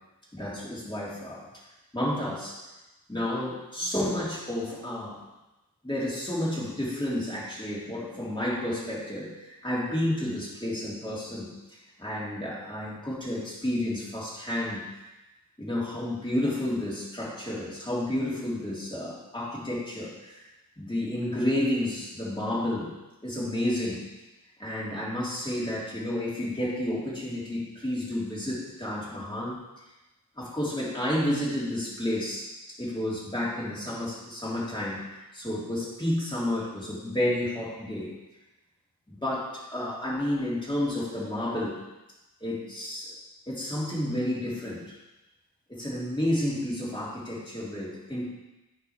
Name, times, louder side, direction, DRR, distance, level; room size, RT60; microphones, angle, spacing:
voice 1, 0.3-1.4 1.9-2.6 3.1-5.2 5.8-11.5 12.0-14.8 15.6-20.3 20.8-22.9 23.2-24.0 24.6-29.6 30.4-35.0 35.3-38.1 39.1-41.8 42.4-43.1 43.5-44.9 45.7-48.3, left 1 dB, 10° left, -7 dB, 2.9 m, -31 dB
9.3 x 3.4 x 5.8 m, 1.0 s
wide cardioid pair, 90°, 37 cm